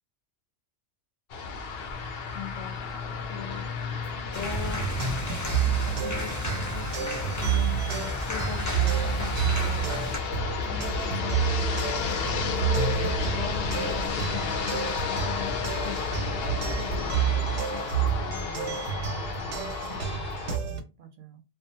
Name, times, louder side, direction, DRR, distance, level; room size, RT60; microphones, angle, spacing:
sound 1, 1.3-20.6, left 4 dB, 65° left, 0.7 m, -32 dB
voice 1, 2.3-3.0 3.3-3.7 4.3-4.9 6.0-10.4 11.0-11.5 12.3-13.1 13.4-18.9, left 8 dB, 85° left, 0.9 m, -41 dB
sound 2, 4.3-10.2, left 1 dB, 25° left, 0.4 m, -34 dB
sound 3, 4.3-20.8, right 8 dB, 90° right, 1.0 m, -30 dB
voice 2, 10.6-11.3 15.9-16.0 19.5-21.4, right 4 dB, 60° right, 0.6 m, -48 dB
2.4 x 2.3 x 2.7 m
omnidirectional pair, 1.2 m